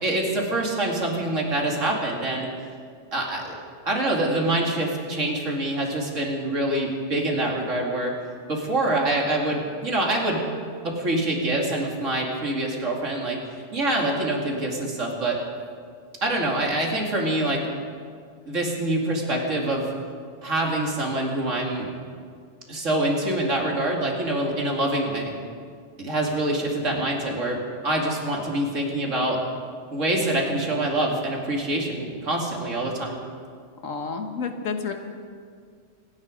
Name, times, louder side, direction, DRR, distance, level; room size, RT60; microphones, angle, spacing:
voice 1, 0.0-2.5 3.1-3.6 3.9-8.1 8.5-10.4 10.8-13.4 13.7-15.4 16.2-17.6 18.5-19.9 20.4-21.9 22.7-25.3 26.0-27.6 27.8-29.4 29.9-33.2, right 1 dB, 75° right, -1 dB, 2.9 m, -25 dB
voice 2, 33.8-34.9, left 5 dB, 80° left, 5 dB, 1.7 m, -30 dB
25.5 x 10.5 x 5.2 m, 2.1 s
omnidirectional pair, 1.3 m